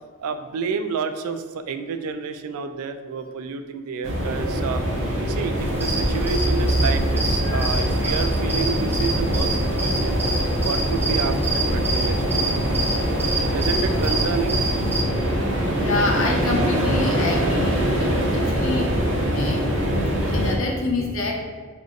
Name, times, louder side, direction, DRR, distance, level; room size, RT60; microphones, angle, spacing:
voice 1, 0.2-4.8 5.3-10.2 10.6-12.5 13.5-14.6, right 5 dB, 80° right, 8 dB, 0.3 m, -29 dB
sound 1, 4.0-20.6, equal, 60° right, 0.7 m, -23 dB
sound 2, 5.6-15.0, right 2 dB, 10° right, 0.5 m, -26 dB
voice 2, 12.7-13.1 13.9-14.0 15.7-21.3, left 2 dB, 60° left, -1 dB, 0.7 m, -28 dB
5.0 x 2.6 x 2.5 m, 1.5 s
head